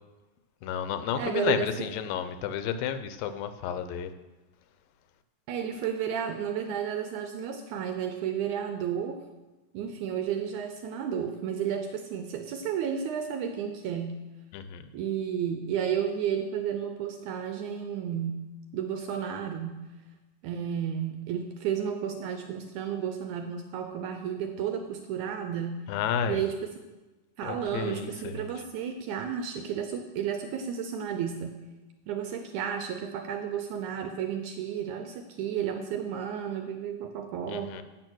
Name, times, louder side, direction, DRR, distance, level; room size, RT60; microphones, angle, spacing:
voice 1, 0.6-4.1 14.5-14.9 25.9-26.4 27.4-28.4 37.5-37.8, left 8 dB, 85° left, 11 dB, 2.4 m, -31 dB
voice 2, 1.2-1.9 5.5-9.3 9.7-14.2 14.9-18.5 18.7-19.9 20.4-25.9 26.3-26.7 27.4-31.6 32.1-37.8, right 8 dB, 80° right, 6 dB, 1.8 m, -32 dB
8.9 x 7.7 x 6.2 m, 1.1 s
omnidirectional pair, 4.0 m